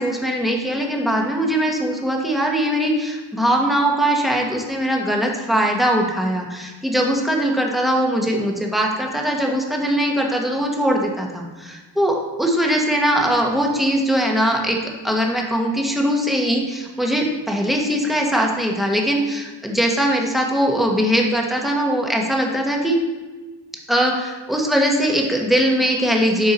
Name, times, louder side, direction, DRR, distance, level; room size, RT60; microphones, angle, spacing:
voice 1, 0.0-23.0 23.9-26.5, equal, ahead, 0 dB, 1.3 m, -21 dB
7.9 x 4.7 x 4.3 m, 1.3 s
wide cardioid pair, 40°, 43 cm